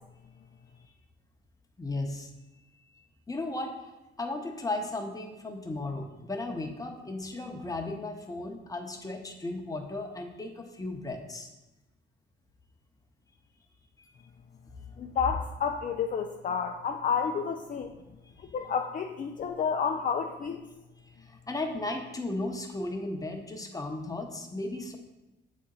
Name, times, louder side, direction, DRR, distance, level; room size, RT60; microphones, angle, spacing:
voice 1, 1.8-2.3 3.3-3.9 4.2-11.5 21.2-25.0, left 2 dB, 15° left, 3 dB, 1.0 m, -35 dB
voice 2, 15.0-17.9 18.5-20.6, left 6 dB, 40° left, 4 dB, 0.5 m, -30 dB
7.4 x 4.2 x 3.9 m, 1.0 s
cardioid pair, 90°, 20 cm